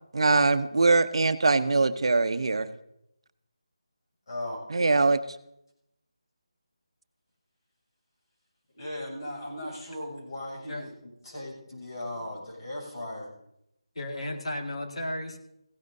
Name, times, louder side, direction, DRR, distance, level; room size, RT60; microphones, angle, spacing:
voice 1, 0.1-2.7 4.7-5.2, right 3 dB, 65° right, 11 dB, 0.7 m, -22 dB
voice 2, 4.3-4.6 8.8-10.9 11.2-13.3, left 1 dB, 50° left, -2 dB, 6.5 m, -37 dB
voice 3, 14.0-15.4, left 1 dB, 80° left, 3 dB, 1.9 m, -34 dB
17.0 x 16.0 x 2.7 m, 0.80 s
figure-of-eight pair, 165°, 3 cm